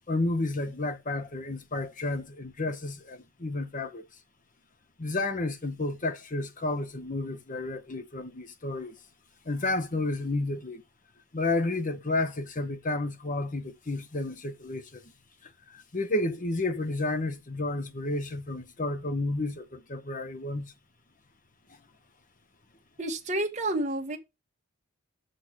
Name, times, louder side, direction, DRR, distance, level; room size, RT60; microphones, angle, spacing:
voice 1, 0.1-4.1 5.0-8.9 9.4-10.8 11.3-15.1 15.4-20.7, left 2 dB, 35° left, 0.9 m, -31 dB
voice 2, 23.0-24.2, right 2 dB, 30° right, 1.7 m, -29 dB
6.6 x 6.5 x 6.0 m
head